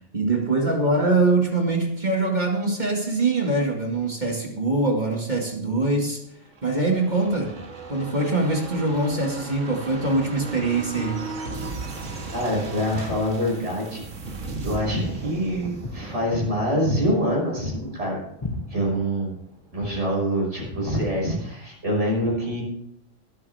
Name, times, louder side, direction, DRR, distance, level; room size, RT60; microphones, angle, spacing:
voice 1, 0.1-6.2 6.6-7.5 7.9-11.3, right 2 dB, 35° right, 1 dB, 2.2 m, -23 dB
sound 1, 6.4-19.9 20.2-20.3, right 3 dB, 80° right, 2.1 m, -37 dB
voice 2, 12.3-14.0 14.6-18.2 18.7-19.3 19.7-22.6, equal, 65° right, -2 dB, 6.1 m, -25 dB
Walk footsteps, 15.6-20.1, left 2 dB, 20° left, 1.9 m, -37 dB
21.0 x 8.7 x 3.5 m, 0.77 s
omnidirectional pair, 1.3 m